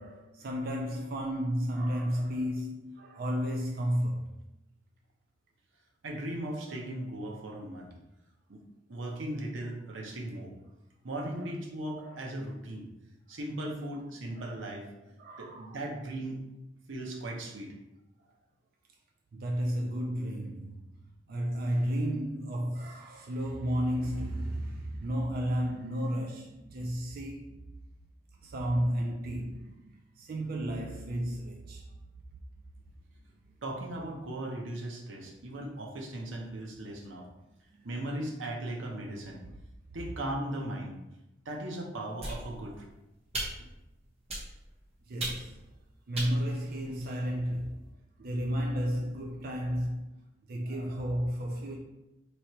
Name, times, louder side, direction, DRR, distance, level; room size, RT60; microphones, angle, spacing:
voice 1, 0.0-4.3 11.3-11.5 12.0-12.2 14.4-14.6 15.2-15.8 19.3-21.0 21.3-27.6 28.4-31.9 37.8-37.9 43.6-43.7 45.0-45.6 46.1-47.8 48.2-50.2 50.5-51.8, equal, 50° right, 0.4 m, -33 dB
voice 2, 6.0-7.9 8.5-8.6 8.9-10.5 11.0-12.9 13.3-16.4 16.9-17.7 33.6-37.3 37.8-39.4 39.9-41.0 41.4-42.8, right 1 dB, 90° right, 0.8 m, -38 dB
sound 1, 42.2-42.8 43.3-43.8 44.3-44.7 45.2-45.6 46.1-47.3, right 1 dB, 30° right, 1.0 m, -38 dB
3.1 x 2.9 x 4.3 m
head